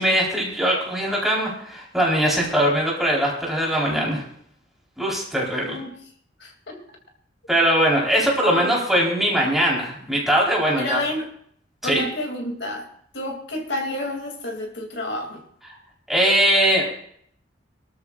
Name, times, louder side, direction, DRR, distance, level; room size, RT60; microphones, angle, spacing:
voice 1, 0.0-4.2 5.0-5.8 7.5-11.0 11.8-12.0 16.1-16.9, equal, ahead, -4 dB, 4.6 m, -21 dB
voice 2, 6.4-6.8 8.2-8.8 10.8-11.3 11.8-12.9 13.1-15.4, left 1 dB, 70° left, 2 dB, 3.0 m, -29 dB
24.0 x 13.0 x 2.6 m, 0.64 s
head